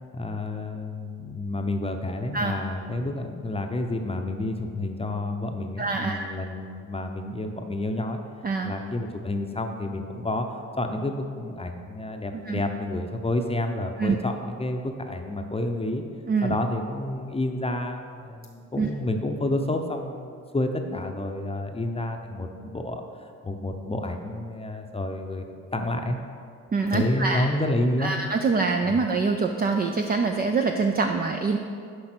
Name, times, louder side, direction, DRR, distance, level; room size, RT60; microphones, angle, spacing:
voice 1, 0.1-8.2 8.6-10.5 10.8-16.0 16.4-25.5 25.7-26.2 26.9-28.2 28.9-29.0, left 1 dB, 15° left, 4 dB, 0.7 m, -29 dB
voice 2, 5.8-6.2 8.4-8.7 12.5-12.6 14.0-14.2 16.3-16.5 18.8-18.9 26.7-27.5 28.0-31.6, right 4 dB, 30° right, 4 dB, 0.5 m, -25 dB
6.6 x 5.0 x 6.1 m, 2.3 s
supercardioid pair, 75°, 34 cm